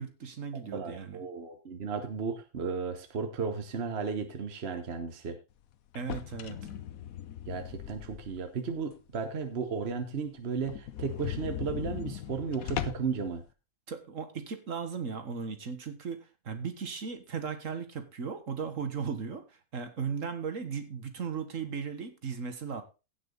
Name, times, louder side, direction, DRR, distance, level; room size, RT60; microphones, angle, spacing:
voice 1, 0.0-1.2 5.9-6.6 13.9-22.8, right 6 dB, 65° right, 8 dB, 1.8 m, -37 dB
voice 2, 0.7-5.4 7.5-13.4, right 5 dB, 50° right, 7 dB, 1.3 m, -34 dB
sound 1, 5.9-8.5 8.9-9.0 9.4-9.5 9.8-9.9 10.1-10.2 10.6-13.2, left 11 dB, 90° left, 1.2 m, -38 dB
16.5 x 6.1 x 3.9 m, 0.30 s
omnidirectional pair, 1.4 m